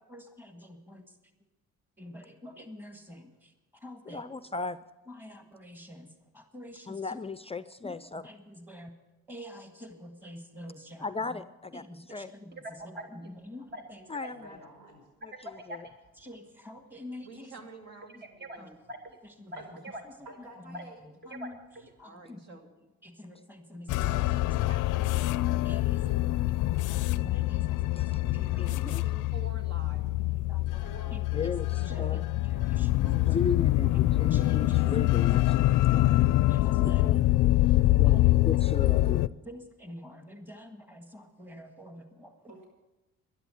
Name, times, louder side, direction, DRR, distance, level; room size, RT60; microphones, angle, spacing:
voice 1, 0.1-1.2 2.0-4.3 5.1-7.2 7.8-8.9 9.3-11.4 11.7-14.1 16.2-17.5 18.1-18.2 18.6-18.7 19.4-19.5 20.0-20.1 20.4-20.8 21.3-21.6 22.0-22.6 23.0-24.7 25.2-26.0 26.7-28.6 30.5-31.2 31.8-32.2 32.5-33.4 33.9-34.9 36.5-37.3 38.0-38.6 39.4-42.5, left 1 dB, 5° right, 5 dB, 1.7 m, -47 dB
voice 2, 4.1-4.8 6.9-8.3 11.0-11.8 12.1-12.3 14.1-14.6 28.0-28.1 28.6-29.0 31.3-32.2 33.3-35.5 35.9-36.0 36.8-37.2 37.9-38.2 38.4-39.3, left 4 dB, 20° left, 13 dB, 0.4 m, -35 dB
voice 3, 12.5-13.3 13.7-13.8 14.2-14.3 15.2-15.9 18.2-18.6 18.9-19.2 19.5-20.0 20.7-20.8 21.2-21.9, right 1 dB, 35° right, 5 dB, 1.2 m, -43 dB
voice 4, 14.3-15.0 19.6-19.7 20.3-21.0 38.0-38.1 42.5-42.7, right 1 dB, 80° right, 2 dB, 5.4 m, -50 dB
voice 5, 17.2-18.8 22.0-22.9 23.9-25.1 25.7-26.3 28.6-31.2 31.9-32.2 32.5-33.4 33.9-34.1 35.3-36.2, right 2 dB, 60° right, 4 dB, 2.4 m, -49 dB
sound 1, 23.9-39.3, left 17 dB, 90° left, 0.5 m, -25 dB
12.0 x 11.0 x 7.6 m, 1.1 s
cardioid pair, 90°, 30 cm